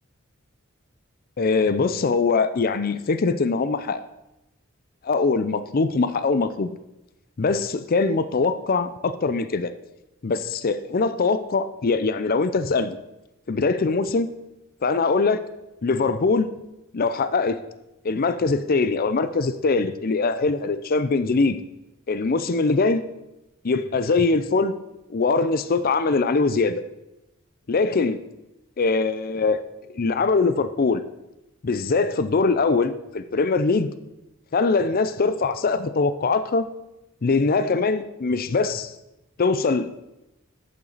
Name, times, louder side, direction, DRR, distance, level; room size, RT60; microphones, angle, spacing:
voice 1, 1.4-4.0 5.0-6.7 7.4-9.7 10.2-13.0 13.5-14.3 14.8-15.4 15.8-16.5 16.9-17.6 18.0-21.6 22.1-23.0 23.6-24.7 25.1-26.8 27.7-28.2 28.8-29.6 29.9-31.0 31.6-33.9 34.5-36.7 37.2-38.9 39.4-39.9, left 4 dB, 45° left, 12 dB, 0.5 m, -22 dB
11.5 x 8.8 x 4.0 m, 0.95 s
head